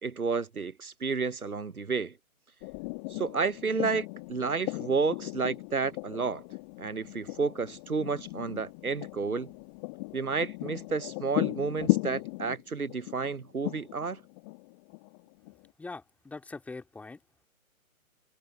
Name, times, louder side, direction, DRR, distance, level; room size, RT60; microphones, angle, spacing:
voice 1, 0.0-2.1 3.1-6.4 6.8-9.5 10.1-14.2, right 4 dB, 85° right, 1.0 m, -31 dB
sound 1, 2.6-15.7, left 30 dB, 20° left, 2.7 m, -36 dB
voice 2, 15.8-17.2, left 3 dB, 5° left, 2.9 m, -42 dB
figure-of-eight pair, 140°, 43 cm